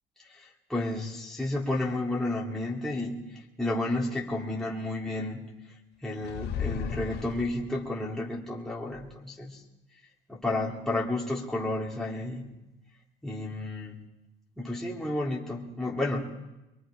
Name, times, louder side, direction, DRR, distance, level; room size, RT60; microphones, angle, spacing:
voice 1, 0.3-5.5 6.0-9.6 10.3-12.4 13.2-14.0 14.6-16.3, left 2 dB, 5° left, -5 dB, 2.6 m, -31 dB
sound 1, 6.2-7.9, left 7 dB, 65° left, 1.7 m, -35 dB
23.5 x 22.0 x 5.0 m, 0.99 s
cardioid pair, 125°, 18 cm